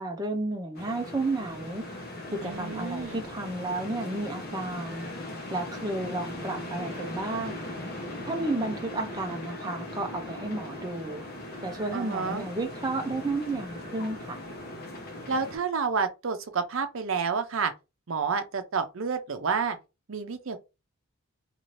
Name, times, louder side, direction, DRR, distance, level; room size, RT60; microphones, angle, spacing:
voice 1, 0.0-1.8 2.3-5.1 5.5-7.6 8.3-11.2 11.6-14.4, right 2 dB, 20° right, 0.5 m, -32 dB
sound 1, 0.7-15.6, left 1 dB, 45° left, 0.9 m, -39 dB
voice 2, 2.4-3.2 11.9-12.4 15.3-17.7 18.1-19.8 20.1-20.6, right 5 dB, 65° right, 0.6 m, -29 dB
2.7 x 2.5 x 3.1 m
head